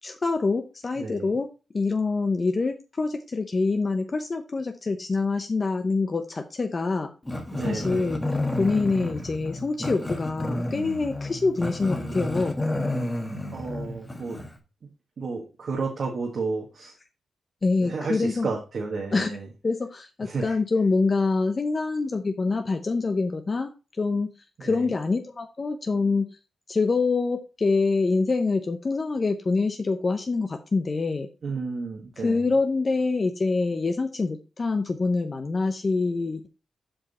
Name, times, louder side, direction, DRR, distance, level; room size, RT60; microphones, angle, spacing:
voice 1, 0.0-1.5 1.7-7.1 7.6-8.2 8.6-12.6 17.6-18.5 19.1-19.4 19.6-23.7 24.0-24.3 24.6-26.4 26.7-31.3 32.2-36.5, left 3 dB, 35° left, 6 dB, 0.7 m, -25 dB
voice 2, 1.0-1.4 7.5-8.1 11.8-12.4 13.5-14.4 15.2-16.9 17.8-19.5 20.2-20.6 24.6-24.9 31.4-32.5, right 4 dB, 60° right, 0 dB, 1.6 m, -32 dB
Growling, 7.3-14.6, left 1 dB, 10° left, 1.5 m, -31 dB
7.6 x 4.9 x 4.2 m, 0.32 s
cardioid pair, 90°, 0 cm